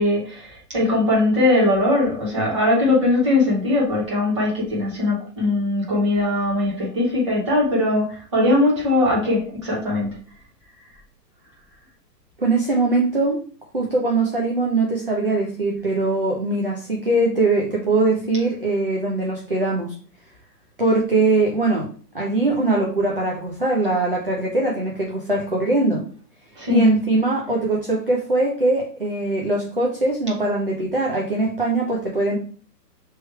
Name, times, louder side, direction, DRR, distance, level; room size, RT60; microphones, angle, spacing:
voice 1, 0.0-10.1 26.6-26.8, left 2 dB, 20° right, -5 dB, 0.9 m, -20 dB
voice 2, 12.4-13.4 13.7-19.9 20.8-21.9 22.1-26.0 26.7-32.4, right 2 dB, 35° right, -2 dB, 0.4 m, -21 dB
3.1 x 3.0 x 4.5 m, 0.43 s
hypercardioid pair, 175°, 50 cm